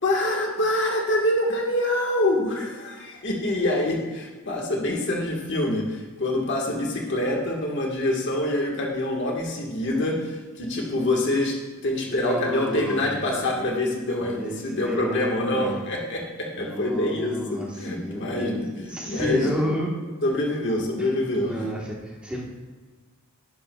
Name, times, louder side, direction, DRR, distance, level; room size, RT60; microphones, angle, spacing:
voice 1, 0.0-11.6 11.8-19.6 20.2-21.6, left 1 dB, 55° left, 0 dB, 1.5 m, -26 dB
voice 2, 12.1-13.2 14.2-15.8 16.5-19.9 21.0-21.1 21.4-22.4, equal, 5° right, -3 dB, 1.1 m, -31 dB
11.0 x 9.9 x 2.3 m, 1.3 s
head